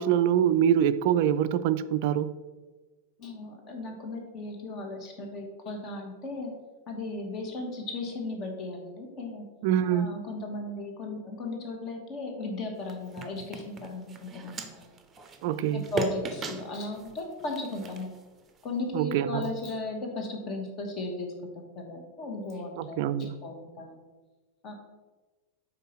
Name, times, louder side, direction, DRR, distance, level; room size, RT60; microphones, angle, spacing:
voice 1, 0.0-2.3 9.6-10.1 15.4-15.9 18.9-19.5 22.8-23.4, right 10 dB, 50° right, 14 dB, 0.3 m, -25 dB
voice 2, 3.2-6.5 6.9-9.4 9.8-14.9 15.7-18.2 18.6-24.0 24.6-24.7, left 2 dB, 35° left, 2 dB, 1.3 m, -36 dB
sound 1, 12.8-18.8, right 4 dB, 20° right, 0.7 m, -39 dB
5.3 x 4.1 x 5.4 m, 1.3 s
figure-of-eight pair, 90°, 0 cm